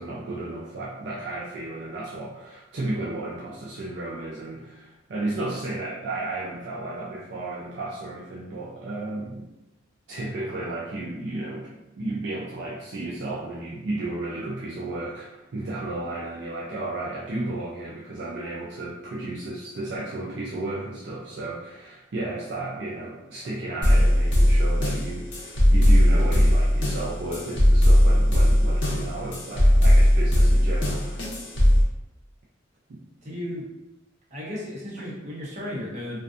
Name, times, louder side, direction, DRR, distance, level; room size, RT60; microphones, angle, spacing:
voice 1, 0.0-9.4 10.1-11.7 12.0-31.2 32.9-33.0, right 2 dB, 60° right, -6 dB, 0.4 m, -33 dB
sound 1, 23.8-31.8, equal, 60° left, 0.7 m, -18 dB
voice 2, 33.2-33.6 34.3-36.2, left 1 dB, 35° right, -6 dB, 0.8 m, -34 dB
2.5 x 2.3 x 2.4 m, 0.97 s
head